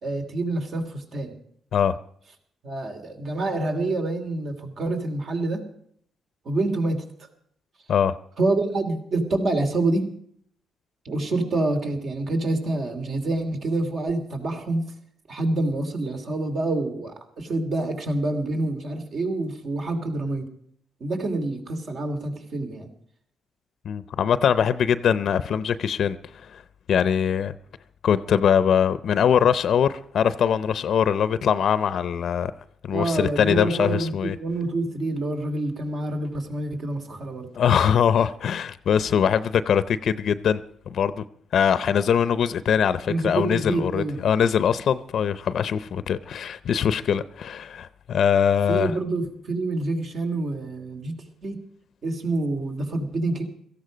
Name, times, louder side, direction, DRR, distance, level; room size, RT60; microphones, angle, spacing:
voice 1, 0.0-1.4 2.6-5.6 6.4-7.0 8.4-10.1 11.0-14.8 15.3-20.5 21.0-22.9 32.9-37.5 43.1-44.2 48.7-51.2 51.4-51.6 52.0-53.4, right 2 dB, 55° right, 2.8 m, -27 dB
voice 2, 23.9-26.2 26.5-26.6 26.9-27.5 28.0-32.5 32.9-34.3 37.6-40.6 40.9-41.2 41.5-48.9, left 8 dB, 60° left, 0.6 m, -22 dB
17.0 x 14.5 x 5.1 m
cardioid pair, 90°, 0 cm